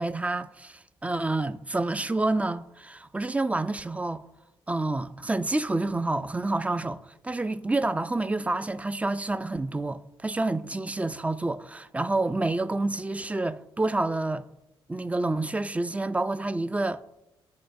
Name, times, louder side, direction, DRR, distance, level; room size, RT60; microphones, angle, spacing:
voice 1, 0.0-4.2 4.7-14.5 14.9-17.0, right 2 dB, 15° right, 0.3 m, -28 dB
11.5 x 3.9 x 2.6 m
cardioid pair, 75°, 10 cm